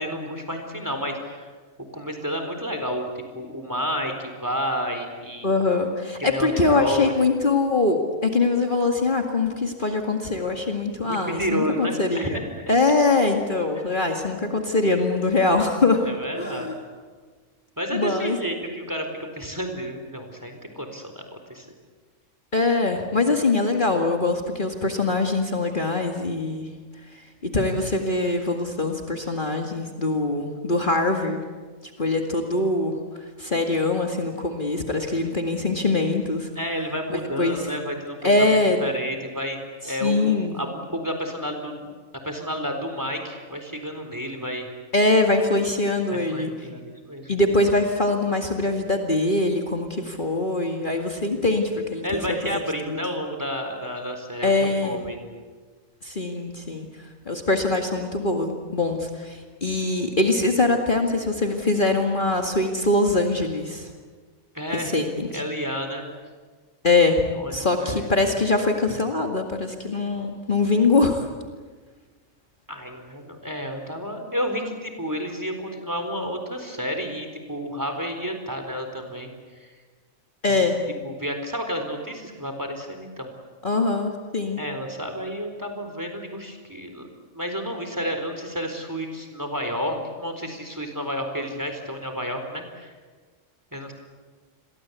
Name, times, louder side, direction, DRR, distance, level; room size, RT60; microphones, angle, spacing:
voice 1, 0.0-1.5 1.9-5.5 6.2-7.1 11.0-12.8 16.0-16.7 17.8-21.7 36.6-38.5 38.8-39.6 39.8-41.9 42.2-44.7 46.1-47.3 52.0-55.3 64.5-64.9 65.3-66.1 67.3-67.5 67.8-68.1 72.7-79.7 80.4-80.6 81.0-83.3 84.6-87.1 87.3-92.9 93.7-93.9, equal, 15° right, 5 dB, 4.1 m, -31 dB
voice 2, 5.4-12.4 12.7-16.1 16.4-16.7 17.9-18.4 22.5-26.7 27.4-31.4 32.0-32.9 33.4-36.5 37.1-37.6 38.2-38.8 39.9-40.6 44.9-46.5 47.3-52.2 52.9-53.0 54.4-55.0 56.0-56.9 57.3-63.9 64.7-65.4 66.8-71.3 80.4-80.8 83.6-84.6, left 2 dB, 40° left, 3 dB, 2.2 m, -23 dB
30.0 x 22.5 x 8.3 m, 1.4 s
omnidirectional pair, 1.4 m